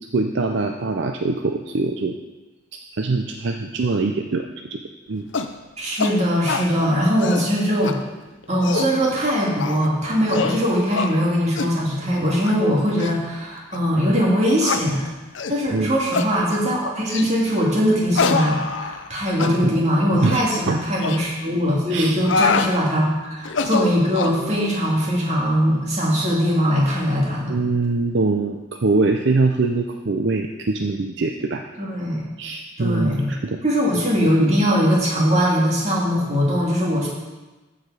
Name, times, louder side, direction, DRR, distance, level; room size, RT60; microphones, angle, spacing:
voice 1, 0.1-2.2 2.9-4.8 5.1-5.3 15.7-16.0 19.6-19.8 20.1-20.4 20.7-20.8 21.9-22.1 27.5-31.6 32.4-33.6, right 3 dB, 60° right, 4 dB, 0.5 m, -23 dB
sound 1, 5.3-5.5 6.0-6.1 6.5-6.7 7.1-7.5 7.8-7.9 8.4-8.9 9.6-9.9 10.3-10.6 10.9-11.1 11.6-11.7 12.3-12.5 13.0-13.1 13.7-13.8 14.6-14.8 15.3-15.6 16.1-16.3 17.1-17.3 18.1-19.1 19.4-19.5 20.2-20.4 21.0-21.2 22.0-22.7 23.4-24.4, left 5 dB, 65° left, 0.6 m, -24 dB
voice 2, 5.8-8.0 8.5-15.1 15.5-27.6 31.8-32.2 32.8-33.3 33.6-37.1, equal, 35° right, -4 dB, 2.1 m, -21 dB
14.0 x 4.9 x 4.8 m, 1.2 s
head